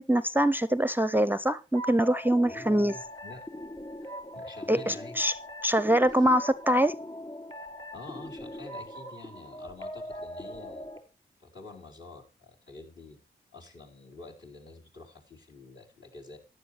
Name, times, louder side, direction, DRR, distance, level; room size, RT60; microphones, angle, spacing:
voice 1, 0.0-2.9 4.7-5.3 5.6-6.9, right 1 dB, 10° right, 0.6 m, -24 dB
sound 1, 1.7-11.0, equal, 25° left, 3.7 m, -41 dB
voice 2, 2.5-3.5 4.0-5.2 6.2-6.3 7.9-10.9 11.4-13.2 13.5-16.4, left 3 dB, 60° left, 4.4 m, -48 dB
14.5 x 10.0 x 3.2 m
cardioid pair, 45°, 21 cm